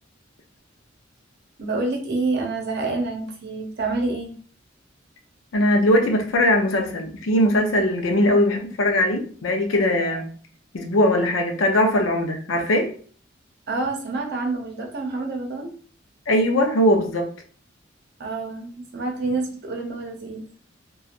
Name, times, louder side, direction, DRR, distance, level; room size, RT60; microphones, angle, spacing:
voice 1, 1.6-4.4 13.7-15.7 18.2-20.5, right 3 dB, 55° right, 0.7 m, -27 dB
voice 2, 5.5-10.3 10.7-12.9 16.3-17.3, left 1 dB, 75° left, 0.6 m, -20 dB
2.9 x 2.3 x 2.4 m
head